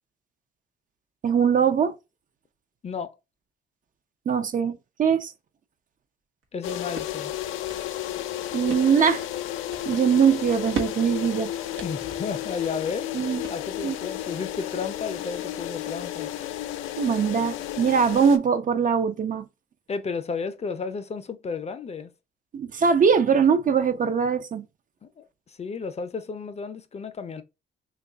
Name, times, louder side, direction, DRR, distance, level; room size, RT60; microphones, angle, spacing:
voice 1, 1.2-1.9 4.3-5.3 8.5-9.2 9.9-11.5 13.1-13.4 13.8-14.0 17.0-19.4 22.5-24.7, right 7 dB, 40° right, 0.5 m, -22 dB
voice 2, 2.8-3.1 6.5-7.3 11.8-16.3 19.9-22.1 25.0-27.4, left 5 dB, 35° left, 0.5 m, -33 dB
sound 1, 6.4-14.0, right 6 dB, 85° right, 0.8 m, -40 dB
sound 2, 6.6-18.4, left 12 dB, 90° left, 0.4 m, -33 dB
3.0 x 2.3 x 3.8 m
cardioid pair, 90°, 20 cm